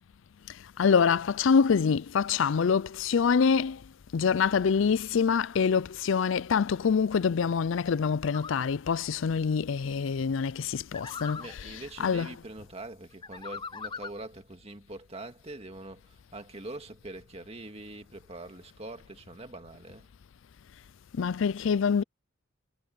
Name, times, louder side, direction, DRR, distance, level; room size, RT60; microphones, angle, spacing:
voice 1, 0.8-3.8 4.1-12.4 21.1-22.0, left 6 dB, 65° left, 0.4 m, -25 dB
sound 1, 8.3-8.6 10.9-11.5 13.2-14.2, left 5 dB, 20° left, 0.6 m, -40 dB
voice 2, 11.4-20.1, right 2 dB, 30° right, 2.0 m, -43 dB
head